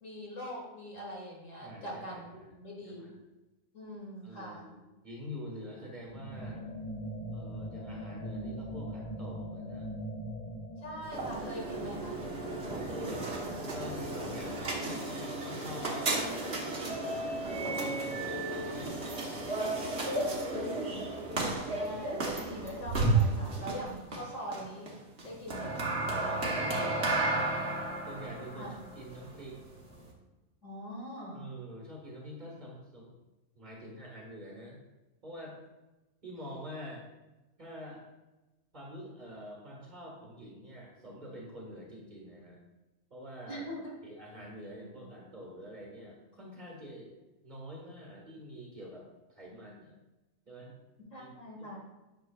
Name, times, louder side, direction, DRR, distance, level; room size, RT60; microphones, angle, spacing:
voice 1, 0.0-2.2 2.6-3.2 3.7-4.7 10.8-12.2 14.7-15.2 20.5-21.1 21.7-24.9 25.2-25.8 28.6-28.8 30.6-31.5 43.5-43.9 51.1-51.8, equal, 55° left, -3 dB, 2.3 m, -42 dB
voice 2, 1.6-2.5 2.9-3.1 4.2-4.8 5.0-6.6 7.3-9.9 12.9-16.1 16.9-20.3 21.5-22.2 22.6-22.8 26.2-27.5 28.1-29.6 31.3-33.1 33.6-34.8 35.2-35.6 36.2-37.1 37.6-38.0 38.7-42.6 43.1-43.6 44.0-47.1 47.4-49.1 49.3-50.0 50.5-50.7 51.2-51.3 51.6-51.8, equal, 30° right, -2 dB, 1.7 m, -46 dB
sound 1, 6.0-12.8, equal, 20° left, 1.7 m, -41 dB
sound 2, 11.0-30.1, right 2 dB, 50° right, 1.5 m, -33 dB
10.0 x 6.6 x 2.3 m, 1.1 s
omnidirectional pair, 1.5 m